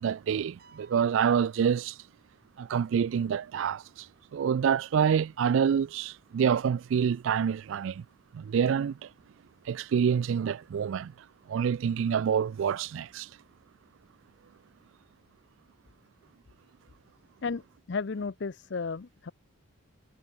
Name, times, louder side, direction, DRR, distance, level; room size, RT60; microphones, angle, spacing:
voice 1, 0.0-2.0 2.6-4.1 4.3-8.0 8.3-9.1 9.7-11.1 11.5-13.3, right 7 dB, 65° right, 0.3 m, -27 dB
sound 1, 0.6-2.5, right 4 dB, 45° right, 5.8 m, -62 dB
voice 2, 17.9-19.3, left 4 dB, 55° left, 0.5 m, -33 dB
head